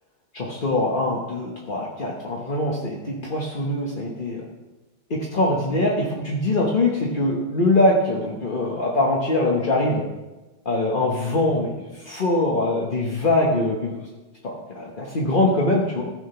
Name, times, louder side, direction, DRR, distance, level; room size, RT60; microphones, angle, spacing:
voice 1, 0.3-4.4 5.1-10.0 10.6-14.0 14.4-16.0, left 2 dB, 35° left, -2 dB, 0.8 m, -23 dB
14.5 x 5.0 x 5.6 m, 1.1 s
omnidirectional pair, 2.4 m